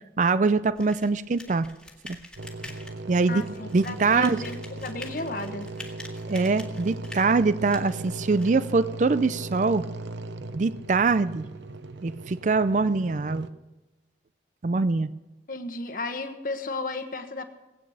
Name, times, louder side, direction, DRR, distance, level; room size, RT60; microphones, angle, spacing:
voice 1, 0.2-1.7 2.0-2.2 3.1-3.4 3.7-4.4 6.3-9.8 10.5-11.4 12.0-13.5 14.6-15.1, right 4 dB, 40° right, 15 dB, 0.4 m, -23 dB
sound 1, 0.7-8.5, left 1 dB, 5° left, 1.6 m, -46 dB
sound 2, 2.4-13.5, right 2 dB, 80° right, 0.8 m, -38 dB
voice 2, 3.3-4.6 4.8-5.7 15.5-17.4, left 2 dB, 50° left, 7 dB, 1.3 m, -33 dB
19.0 x 8.9 x 6.4 m, 1.1 s
head